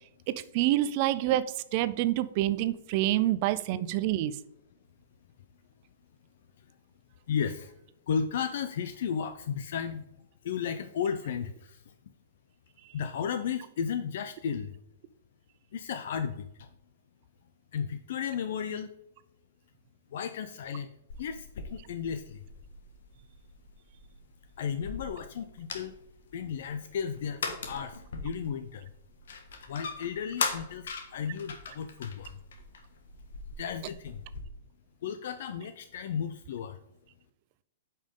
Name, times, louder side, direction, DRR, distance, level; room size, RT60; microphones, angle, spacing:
voice 1, 0.5-4.3, right 14 dB, 30° right, 15 dB, 0.4 m, -27 dB
voice 2, 7.3-7.7 8.1-10.0 10.4-11.9 12.9-14.7 15.7-16.7 17.7-18.9 20.1-20.9 21.2-22.4 24.6-26.0 26.3-28.9 29.7-32.4 33.6-34.2 35.0-36.8, left 7 dB, 55° left, 9 dB, 0.5 m, -34 dB
sound 1, 21.1-34.4, left 4 dB, 75° left, 1.4 m, -41 dB
8.7 x 5.4 x 3.7 m, 0.85 s
hypercardioid pair, 175°, 0 cm